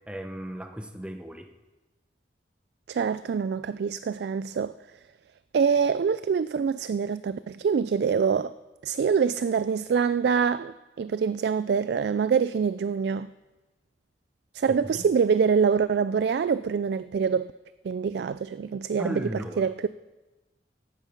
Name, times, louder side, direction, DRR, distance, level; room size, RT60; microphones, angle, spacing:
voice 1, 0.1-1.5 14.7-15.1 19.0-19.7, equal, 5° right, 5 dB, 0.9 m, -36 dB
voice 2, 2.9-4.8 5.5-8.6 8.8-13.3 14.5-17.5 17.8-19.9, right 6 dB, 65° right, 14 dB, 0.3 m, -25 dB
14.5 x 8.9 x 5.8 m, 1.1 s
head